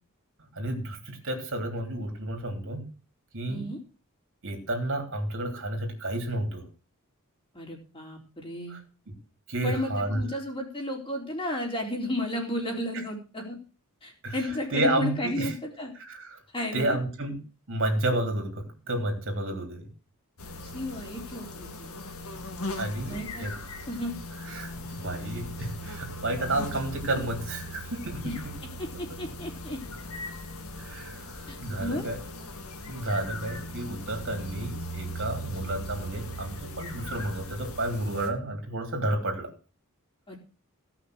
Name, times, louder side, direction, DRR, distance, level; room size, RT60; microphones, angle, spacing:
voice 1, 0.5-2.8 3.3-3.7 4.4-6.6 8.7-8.8 9.5-10.3 14.2-15.5 15.9-16.4 16.7-17.4 17.7-19.9 22.8-23.5 24.4-28.3 30.8-32.2 32.9-39.5, right 1 dB, 60° right, 3 dB, 3.4 m, -31 dB
voice 2, 3.5-3.8 7.5-8.8 9.6-13.6 14.0-15.9 16.5-17.0 20.6-21.9 23.1-23.5 23.9-24.1 28.2-28.4 28.6-29.9 31.5-32.1 35.5-35.7 40.3-40.4, left 1 dB, 25° left, 1 dB, 3.9 m, -33 dB
sound 1, 20.4-38.3, equal, 70° left, 2.2 m, -39 dB
17.0 x 6.0 x 6.4 m, 0.35 s
head